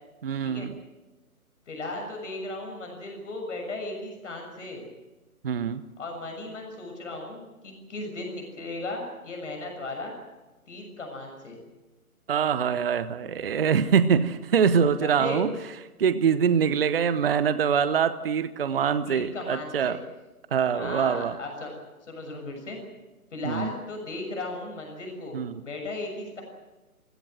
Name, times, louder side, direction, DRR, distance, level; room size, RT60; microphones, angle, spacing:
voice 1, 0.2-0.8 5.4-5.8 12.3-15.5 16.0-20.0 20.5-21.4 23.4-23.7 25.3-25.6, right 7 dB, 40° right, 14 dB, 0.9 m, -24 dB
voice 2, 1.7-4.9 6.0-10.1 10.7-11.6 15.0-15.4 19.0-20.0 20.7-21.7 22.1-22.8 23.3-26.4, left 2 dB, 55° left, 2 dB, 6.6 m, -36 dB
28.0 x 16.5 x 7.8 m, 1.1 s
figure-of-eight pair, 145°, 44 cm